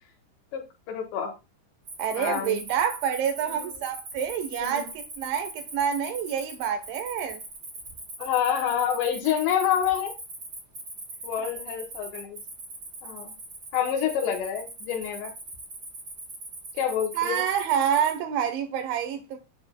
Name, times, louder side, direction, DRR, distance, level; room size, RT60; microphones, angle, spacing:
voice 1, 0.9-1.3 2.1-2.6 3.5-3.7 4.6-4.8 8.2-10.1 11.2-12.4 13.0-13.3 13.7-15.3 16.7-17.4, left 9 dB, 75° left, 3.4 m, -27 dB
Cricket, 1.8-18.2, right 2 dB, 25° right, 3.5 m, -41 dB
voice 2, 2.0-7.4 17.2-19.4, right 8 dB, 80° right, 3.4 m, -27 dB
9.6 x 8.5 x 2.3 m
omnidirectional pair, 5.3 m